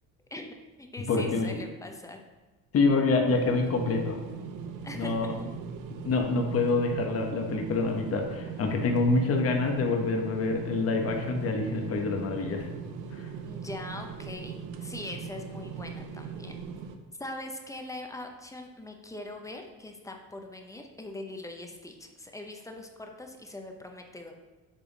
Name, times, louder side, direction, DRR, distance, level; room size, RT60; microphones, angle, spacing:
voice 1, 0.3-2.2 4.8-5.5 13.4-16.6 17.2-24.3, left 2 dB, 10° left, 3 dB, 0.7 m, -42 dB
voice 2, 1.1-1.6 2.7-4.2 4.9-5.3 6.0-12.7, left 3 dB, 45° left, 3 dB, 1.1 m, -26 dB
sound 1, 3.3-17.0, right 6 dB, 70° right, 0.7 m, -39 dB
7.5 x 3.5 x 4.0 m, 1.2 s
cardioid pair, 95°, 33 cm